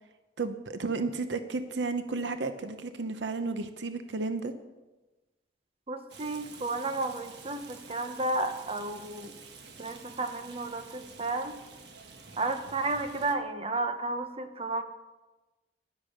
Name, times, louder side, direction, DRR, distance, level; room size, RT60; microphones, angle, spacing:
voice 1, 0.4-4.5, right 3 dB, 90° right, 9 dB, 0.9 m, -32 dB
voice 2, 5.9-9.3 9.8-11.6 12.4-14.8, right 2 dB, 35° right, 8 dB, 0.9 m, -32 dB
Rain, 6.1-13.3, right 4 dB, 70° right, 1.4 m, -49 dB
11.0 x 10.5 x 6.5 m, 1.1 s
head